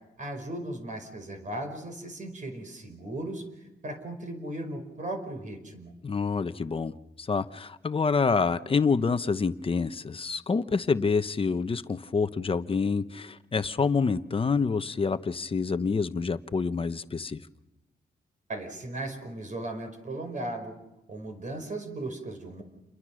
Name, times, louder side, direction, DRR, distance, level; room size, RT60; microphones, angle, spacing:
voice 1, 0.2-6.0 18.5-20.7 21.1-22.6, right 1 dB, 50° right, 5.1 m, -37 dB
voice 2, 6.0-17.4, left 5 dB, 30° left, 0.9 m, -27 dB
29.0 x 22.5 x 6.4 m
wide cardioid pair, 115°, 17 cm